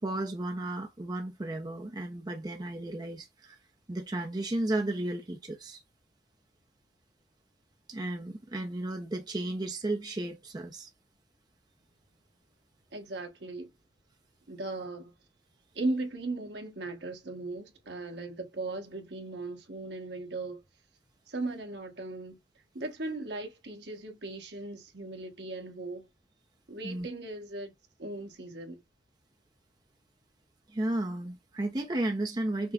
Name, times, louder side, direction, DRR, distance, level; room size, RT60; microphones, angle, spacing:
voice 1, 0.0-3.6 3.9-5.8 7.9-10.9 26.8-27.1 30.7-32.7, right 1 dB, 25° right, 0.5 m, -33 dB
voice 2, 12.9-13.7 14.5-15.1 15.7-20.6 21.3-22.4 22.7-26.1 26.7-27.7 28.0-28.8, right 2 dB, 70° right, 1.2 m, -37 dB
5.8 x 2.1 x 3.7 m
head